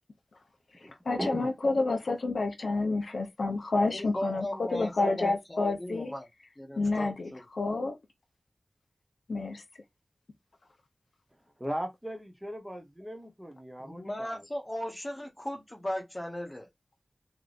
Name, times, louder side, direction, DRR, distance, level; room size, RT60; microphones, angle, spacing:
voice 1, 1.1-6.1 6.8-7.3 7.6-8.0 9.3-9.6, left 3 dB, 85° left, 0.6 m, -29 dB
voice 2, 3.9-6.3 6.6-7.4 13.8-16.7, left 1 dB, 20° left, 0.8 m, -37 dB
voice 3, 11.6-14.4, equal, 10° right, 0.7 m, -37 dB
3.4 x 2.6 x 2.4 m
wide cardioid pair, 90°, 0 cm